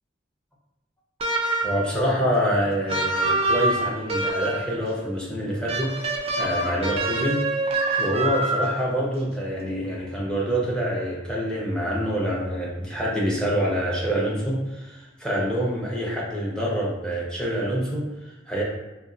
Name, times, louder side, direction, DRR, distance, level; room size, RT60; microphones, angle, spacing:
sound 1, 1.2-1.9 2.9-4.7 5.7-8.9, right 2 dB, 30° right, 0.3 m, -25 dB
voice 1, 1.6-7.4 8.0-18.6, equal, 5° left, -5 dB, 0.7 m, -26 dB
2.7 x 2.7 x 2.5 m, 1.1 s
head